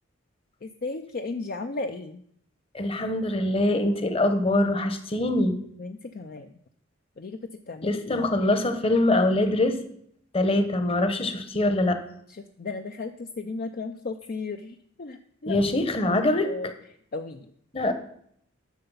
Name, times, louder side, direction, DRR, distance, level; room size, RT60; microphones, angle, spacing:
voice 1, 0.6-2.2 5.8-6.5 7.2-7.4 7.7-8.4 12.3-15.6 16.4-16.7 17.1-17.5, left 3 dB, 45° left, 7 dB, 0.5 m, -35 dB
voice 2, 2.7-5.6 7.8-9.8 10.3-12.0 15.4-16.5 17.7-17.9, left 1 dB, 25° left, 8 dB, 1.0 m, -23 dB
10.5 x 6.7 x 5.6 m, 0.68 s
head